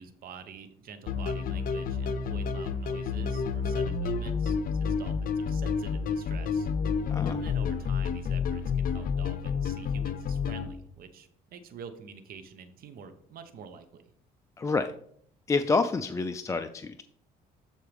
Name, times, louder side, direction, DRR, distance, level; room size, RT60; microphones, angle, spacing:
voice 1, 0.0-6.7 7.3-14.0, right 6 dB, 60° right, 10 dB, 0.9 m, -47 dB
sound 1, 1.1-10.7, left 5 dB, 60° left, 0.7 m, -30 dB
voice 2, 7.1-7.4 14.6-14.9 15.5-17.0, left 4 dB, 20° left, 9 dB, 0.4 m, -28 dB
13.0 x 4.6 x 3.4 m, 0.67 s
cardioid pair, 110°, 17 cm